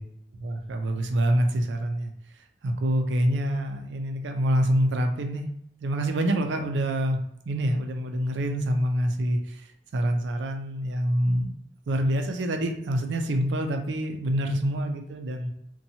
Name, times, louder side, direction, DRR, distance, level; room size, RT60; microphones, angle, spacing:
voice 1, 0.4-2.1 2.6-5.5 5.8-7.2 7.5-9.6 9.9-11.5 11.9-15.5, equal, 85° right, 5 dB, 0.4 m, -26 dB
2.7 x 2.2 x 2.7 m, 0.75 s
head